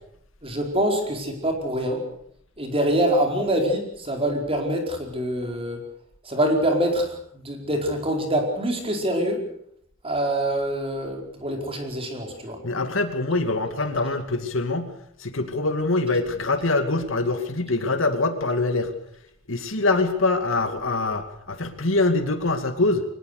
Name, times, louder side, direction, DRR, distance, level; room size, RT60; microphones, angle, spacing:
voice 1, 0.4-2.0 2.6-5.8 6.2-9.4 10.0-12.6, right 1 dB, 30° right, 2 dB, 4.7 m, -25 dB
voice 2, 12.6-14.9 15.2-18.9 19.5-23.0, left 2 dB, 70° left, 7 dB, 2.5 m, -24 dB
23.0 x 20.0 x 6.7 m, 0.68 s
head